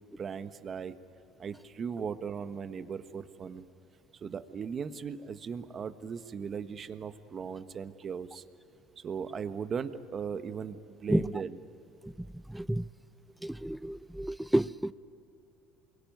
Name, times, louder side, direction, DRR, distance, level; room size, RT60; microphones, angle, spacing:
voice 1, 0.2-0.9 1.4-3.6 4.1-8.4 9.0-11.6, right 6 dB, 40° right, 1.4 m, -38 dB
voice 2, 12.5-12.8 13.4-14.9, right 1 dB, 5° right, 0.6 m, -30 dB
28.0 x 22.5 x 9.4 m
supercardioid pair, 85°, 0 cm